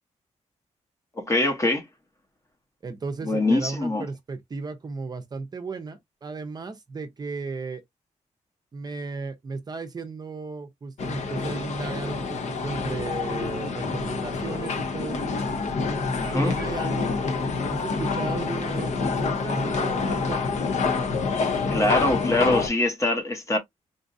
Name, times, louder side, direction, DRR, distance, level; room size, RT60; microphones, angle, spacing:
voice 1, 1.2-1.9 3.2-4.0 16.2-16.5 21.7-23.6, left 2 dB, 25° left, 0.8 m, -23 dB
voice 2, 2.8-7.8 8.7-15.2 16.1-17.1 17.7-20.6, right 4 dB, 35° right, 0.6 m, -35 dB
sound 1, 11.0-22.7, left 4 dB, 65° left, 0.7 m, -27 dB
3.9 x 2.4 x 2.5 m
wide cardioid pair, 160°, 12 cm